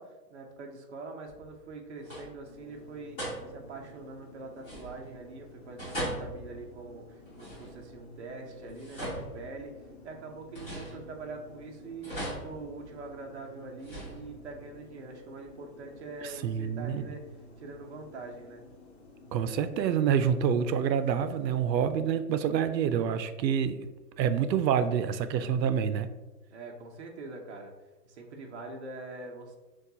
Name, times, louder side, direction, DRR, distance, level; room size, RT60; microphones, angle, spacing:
voice 1, 0.0-3.2 3.5-17.2 17.6-18.6 26.5-27.7 28.0-29.6, right 3 dB, 45° right, 2 dB, 0.7 m, -44 dB
sound 1, 1.3-1.7 2.0-2.5 3.2-3.8 4.6-5.3 5.8-8.0 8.6-10.0 10.5-11.5 12.0-13.3 13.8-14.7, right 1 dB, 10° left, 1.2 m, -40 dB
sound 2, 2.5-21.9, left 1 dB, 40° left, 0.8 m, -52 dB
voice 2, 16.2-17.1 19.3-23.9 24.2-26.1, right 8 dB, 85° right, 11 dB, 0.6 m, -27 dB
6.1 x 2.4 x 2.7 m, 1.2 s
hypercardioid pair, 170°, 49 cm